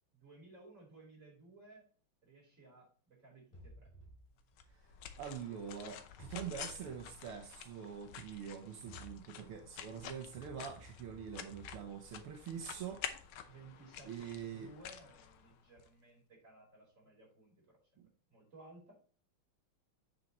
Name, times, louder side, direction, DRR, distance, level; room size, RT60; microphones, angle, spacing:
voice 1, 0.1-1.9 2.2-3.9 13.5-17.8 18.3-19.0, right 2 dB, 35° right, -3 dB, 4.7 m, -58 dB
sound 1, 3.5-5.7 6.2-8.0 8.7-13.8, equal, 15° left, 2.8 m, -59 dB
sound 2, 4.6-15.9, left 9 dB, 80° left, 1.7 m, -50 dB
voice 2, 5.2-13.0 14.0-14.7 18.0-18.1, right 8 dB, 85° right, 3 dB, 1.9 m, -45 dB
8.0 x 6.9 x 3.0 m, 0.38 s
omnidirectional pair, 2.4 m